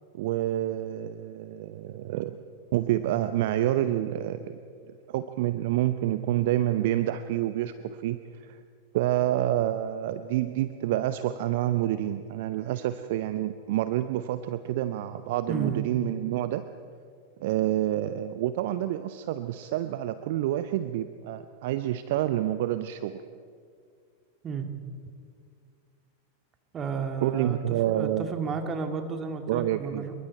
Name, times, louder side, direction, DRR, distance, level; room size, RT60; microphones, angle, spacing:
voice 1, 0.1-2.4 2.7-4.6 5.1-8.6 8.9-16.7 17.4-23.2 27.2-28.3 29.5-30.0, right 13 dB, 50° right, 12 dB, 0.7 m, -28 dB
voice 2, 15.5-15.8 24.4-24.7 26.7-30.1, right 5 dB, 25° right, 6 dB, 2.2 m, -32 dB
26.5 x 22.5 x 4.5 m, 2.2 s
figure-of-eight pair, 90°, 0 cm